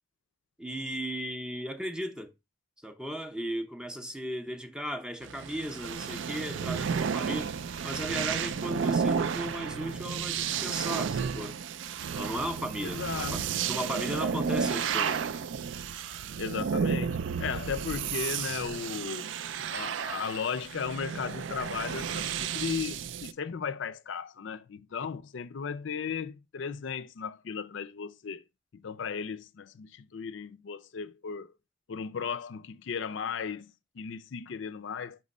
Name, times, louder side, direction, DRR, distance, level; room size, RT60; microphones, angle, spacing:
voice 1, 0.6-2.3 2.8-7.6 7.8-11.6 12.1-15.3, equal, 5° right, 0.5 m, -36 dB
sound 1, 5.2-23.3, right 6 dB, 65° right, 0.4 m, -32 dB
voice 2, 12.8-13.6 16.4-19.3 19.7-28.4 28.7-31.5 31.9-35.2, left 6 dB, 65° left, 0.4 m, -36 dB
6.1 x 3.0 x 5.2 m
head